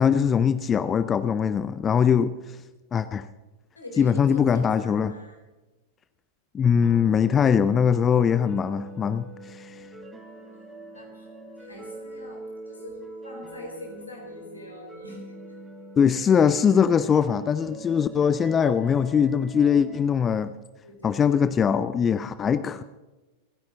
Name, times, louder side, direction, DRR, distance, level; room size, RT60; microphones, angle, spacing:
voice 1, 0.0-2.3 2.9-3.3 4.0-5.1 6.5-9.8 16.0-20.5 21.0-22.8, left 7 dB, 20° left, 14 dB, 0.6 m, -21 dB
voice 2, 3.8-5.4 10.9-11.3 11.6-15.2 20.8-21.6, left 1 dB, 80° left, 1 dB, 4.1 m, -44 dB
sound 1, 6.8-20.0, right 2 dB, 15° right, 3.4 m, -44 dB
28.5 x 10.5 x 3.9 m, 1.1 s
figure-of-eight pair, 90°, 0 cm